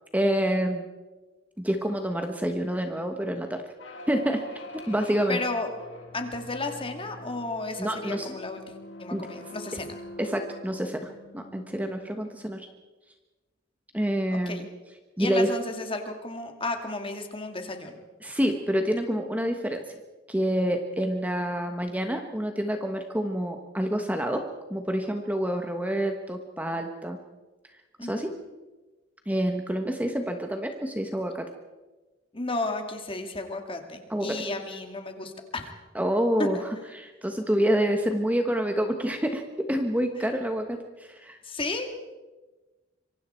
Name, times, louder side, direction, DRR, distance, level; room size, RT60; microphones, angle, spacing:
voice 1, 0.1-0.8 1.6-3.6 4.1-4.4 4.9-5.4 7.8-8.3 9.1-9.3 10.2-12.7 13.9-14.7 15.2-15.5 18.2-19.8 20.3-24.4 24.7-27.2 28.0-28.3 29.3-31.5 34.1-34.4 35.9-36.6 36.9-40.8 41.1-41.4, equal, 10° right, 5 dB, 1.3 m, -27 dB
sound 1, 3.8-12.5, left 1 dB, 70° left, 4.1 m, -44 dB
voice 2, 5.3-5.7 6.1-10.0 14.3-14.6 15.2-18.0 28.0-28.3 32.3-35.7 36.4-36.6 40.2-40.3 41.4-42.0, left 2 dB, 30° left, 5 dB, 2.4 m, -33 dB
26.0 x 23.5 x 4.5 m, 1.2 s
head